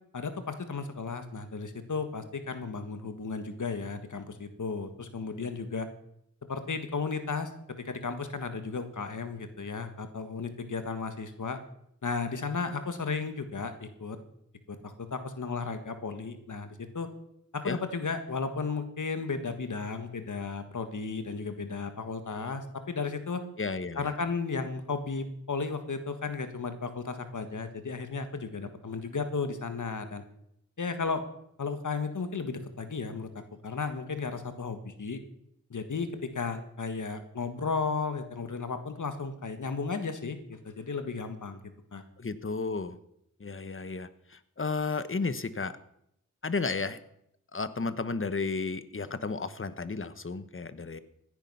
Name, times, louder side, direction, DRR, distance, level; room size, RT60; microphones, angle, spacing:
voice 1, 0.1-5.9 6.5-11.6 12.0-14.2 14.7-17.1 17.5-23.4 24.0-30.2 30.8-31.3 31.6-33.3 33.6-35.2 35.7-41.6 41.9-42.0, left 4 dB, 70° left, 8 dB, 1.7 m, -34 dB
voice 2, 23.6-24.1 42.2-43.0 43.4-45.7 46.4-47.0 47.5-51.0, left 4 dB, 40° left, 13 dB, 1.2 m, -33 dB
16.0 x 10.0 x 5.7 m, 0.75 s
cardioid pair, 45°, 32 cm